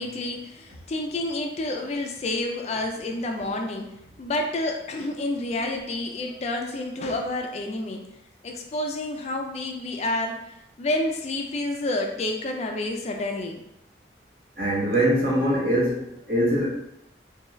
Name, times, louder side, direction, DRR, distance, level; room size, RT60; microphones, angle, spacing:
voice 1, 0.0-3.9 4.2-8.0 8.4-10.4 10.8-13.6, left 2 dB, 35° left, 2 dB, 0.3 m, -29 dB
voice 2, 14.6-16.7, right 1 dB, 50° right, -4 dB, 0.9 m, -23 dB
3.5 x 2.3 x 3.0 m, 0.83 s
head